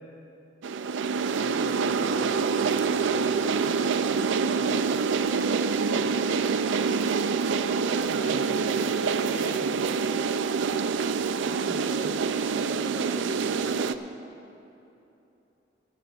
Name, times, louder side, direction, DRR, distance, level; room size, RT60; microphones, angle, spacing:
sound 1, 0.6-13.9, right 5 dB, 80° right, 0.4 m, -26 dB
voice 1, 1.4-3.6 5.7-6.6 7.8-8.6 9.2-9.8, left 1 dB, 80° left, 1 dB, 1.7 m, -42 dB
voice 2, 4.4-4.7 11.4-13.6, equal, 20° right, 0 dB, 1.1 m, -41 dB
25.5 x 11.0 x 2.4 m, 2.9 s
head